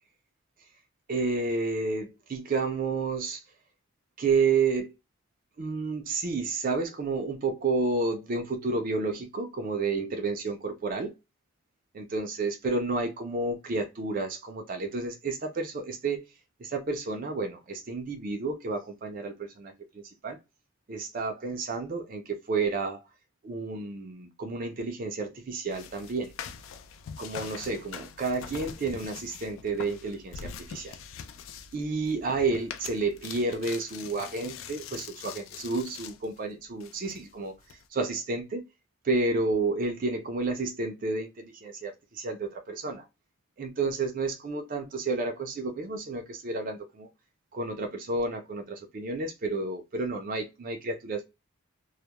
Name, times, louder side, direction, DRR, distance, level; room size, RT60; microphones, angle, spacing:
voice 1, 1.1-3.4 4.2-4.9 5.6-11.1 11.9-16.2 16.6-19.7 20.0-20.4 20.9-23.0 23.4-26.3 27.2-31.0 31.7-38.6 39.0-43.1 43.6-47.1 47.5-51.2, right 3 dB, 40° right, 0.4 m, -31 dB
sound 1, 25.7-36.4 36.8-37.8, left 7 dB, 65° left, 0.3 m, -43 dB
2.2 x 2.1 x 2.8 m
head